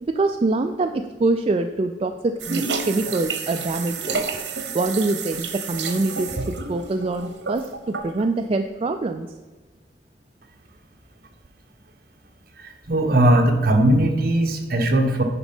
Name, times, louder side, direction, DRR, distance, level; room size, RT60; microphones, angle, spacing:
voice 1, 0.1-4.3 4.7-9.3, right 2 dB, 35° right, 6 dB, 0.4 m, -24 dB
sound 1, 2.4-8.2, right 4 dB, 85° right, 1.0 m, -30 dB
voice 2, 12.6-15.2, right 1 dB, 55° right, 3 dB, 1.2 m, -19 dB
10.0 x 5.0 x 5.3 m, 1.2 s
head